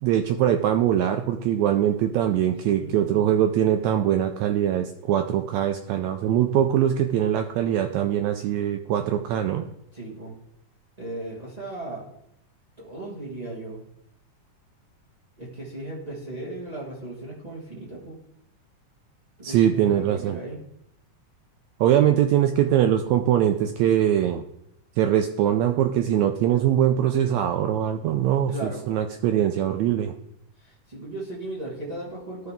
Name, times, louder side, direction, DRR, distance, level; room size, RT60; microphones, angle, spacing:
voice 1, 0.0-9.6 19.4-20.4 21.8-24.4 25.0-30.1, right 10 dB, 80° right, 6 dB, 1.6 m, -22 dB
voice 2, 2.7-3.3 9.9-10.3 11.0-12.1 12.8-13.8 15.4-18.2 19.4-20.6 28.5-28.9 30.6-32.5, right 2 dB, 50° right, -5 dB, 0.4 m, -36 dB
13.0 x 4.7 x 3.5 m, 0.77 s
omnidirectional pair, 3.6 m